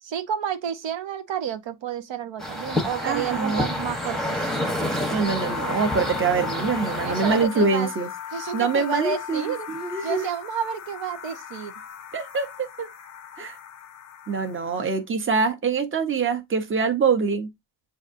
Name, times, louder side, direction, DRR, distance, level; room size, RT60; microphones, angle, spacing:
voice 1, 0.0-4.6 7.0-7.9 8.3-9.7 10.0-11.7, right 8 dB, 80° right, 0.8 m, -30 dB
sound 1, 2.4-7.4, left 1 dB, ahead, 0.9 m, -28 dB
voice 2, 3.0-3.7 5.1-8.1 8.5-10.3 12.1-12.9 13.4-13.6 14.3-17.5, right 5 dB, 30° right, 0.8 m, -24 dB
sound 2, 5.3-15.0, left 10 dB, 40° left, 0.5 m, -38 dB
7.7 x 2.6 x 2.5 m
wide cardioid pair, 140°, 43 cm